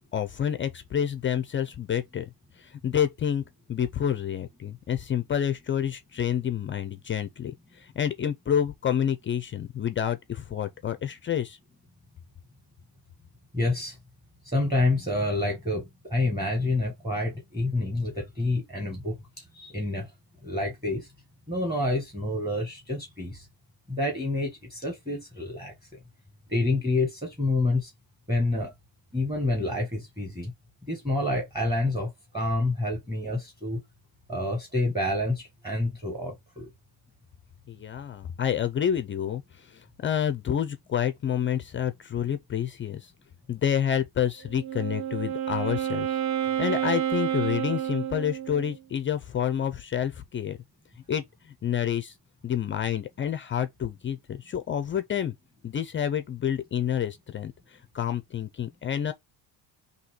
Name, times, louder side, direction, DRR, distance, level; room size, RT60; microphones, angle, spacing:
voice 1, 0.1-2.2 2.6-3.4 3.7-11.6 37.7-43.1 43.5-46.2 46.6-50.6 51.1-52.1 52.4-55.3 55.6-57.5 57.9-59.1, left 9 dB, 30° left, 0.4 m, -28 dB
voice 2, 13.5-14.0 14.4-20.1 20.4-21.1 21.5-23.5 23.9-25.7 26.5-27.9 28.3-28.7 29.1-30.5 30.9-33.8 34.3-36.7, left 2 dB, 10° right, 1.4 m, -28 dB
Wind instrument woodwind instrument, 44.4-48.8, right 10 dB, 40° right, 0.5 m, -29 dB
3.9 x 2.8 x 4.2 m
cardioid pair, 145°, 47 cm